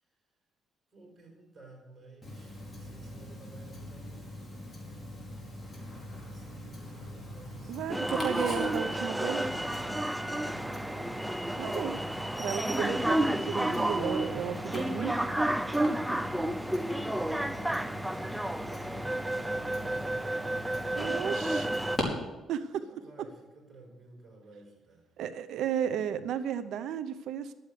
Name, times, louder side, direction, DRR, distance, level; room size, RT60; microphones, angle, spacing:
voice 1, 0.9-4.7 6.0-8.3 10.6-11.2 16.7-20.6 22.8-25.1, right 2 dB, 40° right, 0 dB, 5.3 m, -54 dB
Tick-tock, 2.2-22.0, left 1 dB, 15° left, 4.5 m, -42 dB
voice 2, 7.7-9.5 11.6-12.0 12.4-15.1 21.0-21.7 22.5-22.8 25.2-27.5, right 9 dB, 80° right, 12 dB, 0.6 m, -34 dB
sound 1, 7.9-22.0, right 1 dB, 5° right, 0.6 m, -31 dB
12.0 x 8.5 x 6.6 m, 1.1 s
cardioid pair, 90°, 0 cm